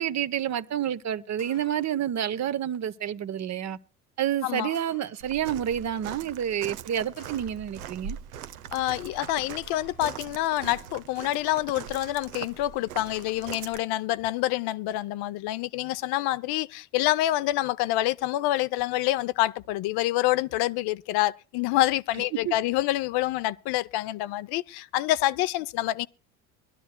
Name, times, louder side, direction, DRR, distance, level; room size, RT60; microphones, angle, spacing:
voice 1, 0.0-3.8 4.2-8.2 22.3-22.5, right 10 dB, 40° right, 0.8 m, -29 dB
sound 1, 1.4-2.1 4.7-5.5 7.2-7.9 9.6-10.2 12.0-12.5 13.1-13.7, left 5 dB, 85° left, 2.7 m, -54 dB
voice 2, 4.4-4.7 8.7-26.1, left 15 dB, 60° left, 0.6 m, -27 dB
Walk footsteps, 5.2-13.8, right 9 dB, 90° right, 0.8 m, -41 dB
22.5 x 12.0 x 2.2 m
hypercardioid pair, 75°, 43 cm